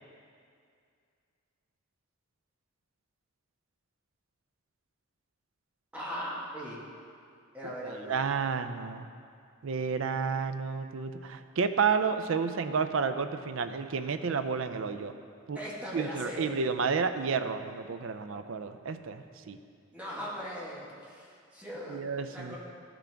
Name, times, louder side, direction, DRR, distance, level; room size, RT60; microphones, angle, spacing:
voice 1, 5.9-6.8 7.5-8.2 15.5-16.5 19.9-22.6, equal, 5° right, -7 dB, 1.4 m, -39 dB
voice 2, 7.8-9.1 9.6-15.1 15.5-15.6 15.9-19.6 21.9-22.6, right 5 dB, 65° right, 9 dB, 0.4 m, -31 dB
12.5 x 6.0 x 3.4 m, 2.3 s
head